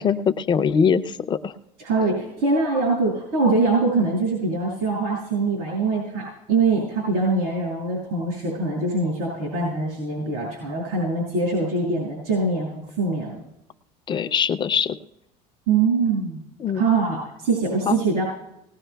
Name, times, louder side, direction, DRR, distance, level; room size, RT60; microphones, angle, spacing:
voice 1, 0.0-1.5 14.1-15.0 16.6-16.9 17.9-18.0, left 7 dB, 30° left, 10 dB, 0.5 m, -22 dB
voice 2, 1.8-13.4 15.7-16.4 16.7-18.2, right 3 dB, 90° right, -5 dB, 5.9 m, -23 dB
19.5 x 18.5 x 2.3 m, 0.87 s
cardioid pair, 135°, 16 cm